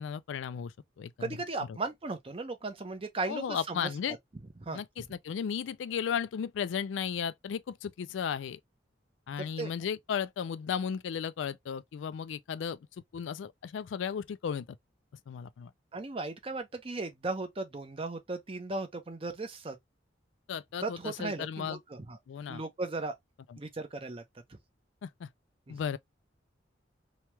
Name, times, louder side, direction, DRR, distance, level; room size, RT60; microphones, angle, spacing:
voice 1, 0.0-1.1 1.7-1.8 3.3-4.2 4.7-8.6 9.3-12.8 13.1-14.7 15.3-15.7 20.5-21.8 22.3-22.6 23.5-23.6 25.0-25.3 25.7-26.0, left 7 dB, 80° left, 0.3 m, -35 dB
voice 2, 1.2-4.2 4.6-4.8 9.4-9.7 15.9-19.8 20.8-22.2 22.5-23.1 23.6-24.2 24.5-24.6 25.7-25.8, right 3 dB, 30° right, 0.6 m, -36 dB
2.9 x 2.3 x 3.0 m
head